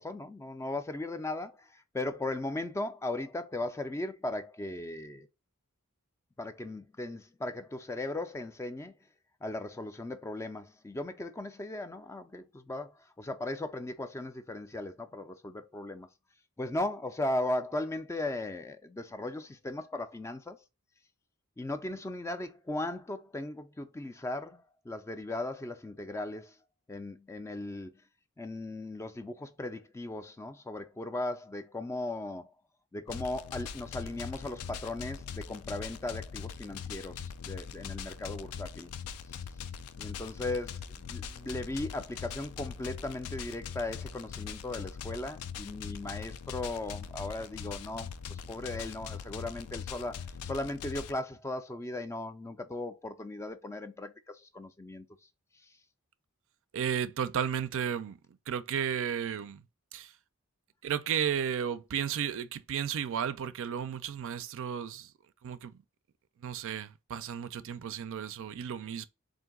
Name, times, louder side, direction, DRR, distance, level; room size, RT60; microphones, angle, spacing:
voice 1, 0.0-5.3 6.4-8.9 9.4-16.1 16.6-20.6 21.6-26.6 26.9-27.9 28.4-32.5 32.9-38.9 39.3-39.4 40.0-55.1 55.5-55.8, left 2 dB, 15° left, 0.3 m, -37 dB
sound 1, 33.1-51.1, left 7 dB, 85° left, 0.4 m, -41 dB
voice 2, 56.7-58.2 58.5-59.6 59.9-60.2 60.8-65.1 65.4-65.8 66.4-69.1, right 8 dB, 60° right, 0.4 m, -33 dB
3.8 x 2.6 x 3.6 m
head